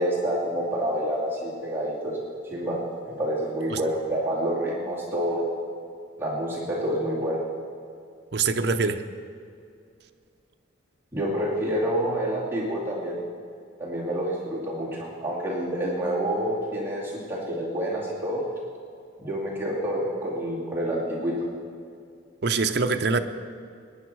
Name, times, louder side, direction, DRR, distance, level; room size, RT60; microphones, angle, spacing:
voice 1, 0.0-2.2 2.5-2.8 3.0-5.4 6.2-7.4 11.1-13.2 13.8-18.4 19.2-21.4, right 1 dB, 10° right, -7 dB, 2.4 m, -28 dB
voice 2, 8.3-9.0 22.4-23.2, right 4 dB, 55° right, 7 dB, 0.6 m, -24 dB
20.0 x 9.9 x 4.6 m, 2.4 s
head